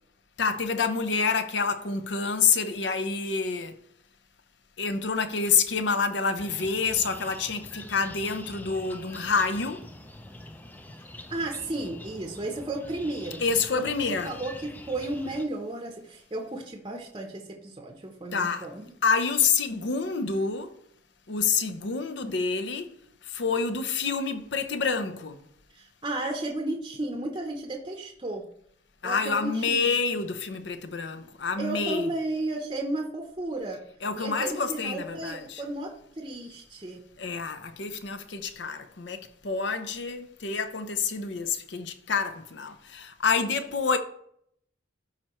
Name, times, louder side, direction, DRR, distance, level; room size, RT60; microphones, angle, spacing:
voice 1, 0.4-3.8 4.8-9.9 13.4-14.4 18.3-18.7 19.0-20.8 21.3-23.0 23.2-25.4 29.0-32.1 34.0-35.6 37.2-44.0, left 5 dB, 65° left, 0.6 m, -28 dB
sound 1, 6.4-15.5, left 1 dB, 10° left, 0.4 m, -45 dB
voice 2, 11.3-18.8 25.7-28.4 29.0-30.0 31.6-33.8 34.1-37.0, right 2 dB, 25° right, 0.7 m, -33 dB
12.0 x 4.4 x 3.0 m
head